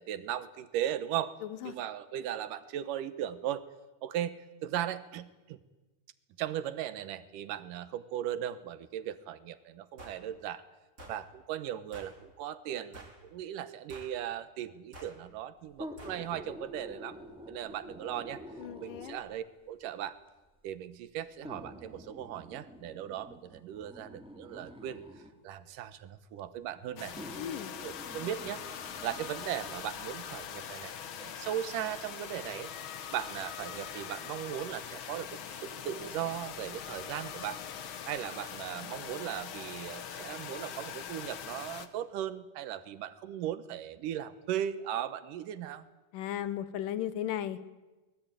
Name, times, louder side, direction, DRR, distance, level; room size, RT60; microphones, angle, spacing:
voice 1, 0.0-1.4 1.6-3.6 4.0-5.6 6.4-10.6 11.1-17.2 17.5-18.4 18.8-20.2 20.6-25.0 25.4-27.1 27.8-28.6 29.0-32.7 33.1-37.6 38.1-45.9, right 11 dB, 75° right, 13 dB, 2.6 m, -37 dB
voice 2, 1.4-1.8 18.6-19.2 27.4-27.8 46.1-47.7, left 11 dB, 75° left, 14 dB, 2.7 m, -36 dB
sound 1, 10.0-10.2 11.0-11.2 11.9-12.2 12.9-13.2 13.9-14.2 14.9-15.2 16.0-16.2, right 1 dB, 20° right, 4.3 m, -49 dB
sound 2, 15.7-19.4 20.3-20.4 21.4-25.4 26.4-26.5 27.1-29.8 30.2-30.3, equal, ahead, 1.9 m, -48 dB
sound 3, 27.0-41.9, left 8 dB, 60° left, 1.3 m, -42 dB
23.5 x 20.0 x 9.1 m, 1.1 s
omnidirectional pair, 3.9 m